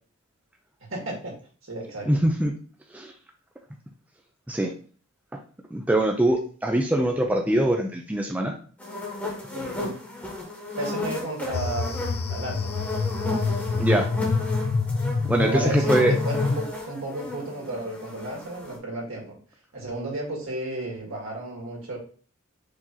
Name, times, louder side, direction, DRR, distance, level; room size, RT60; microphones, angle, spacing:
voice 1, 0.9-1.4 1.6-2.1 9.5-9.9 10.8-12.0 12.3-12.8 15.4-19.3 19.7-22.0, right 1 dB, 80° right, -2 dB, 1.9 m, -33 dB
voice 2, 2.1-2.5 2.9-3.1 4.5-4.7 5.7-8.5 13.8-14.1 15.3-16.2, right 1 dB, 5° right, 2 dB, 0.4 m, -23 dB
sound 1, 8.8-18.8, left 2 dB, 10° left, 1.1 m, -33 dB
sound 2, 11.5-16.6, left 4 dB, 50° left, 0.4 m, -26 dB
4.8 x 2.9 x 3.7 m, 0.41 s
head